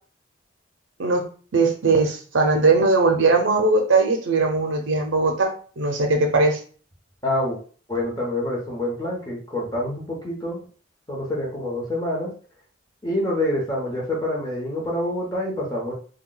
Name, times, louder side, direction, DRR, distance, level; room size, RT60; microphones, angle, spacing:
voice 1, 1.5-6.6, right 3 dB, 70° right, 4 dB, 0.6 m, -20 dB
voice 2, 7.2-7.6 7.9-10.7 11.1-12.3 13.0-15.9, left 1 dB, 20° left, -3 dB, 0.8 m, -26 dB
2.3 x 2.3 x 3.8 m, 0.41 s
head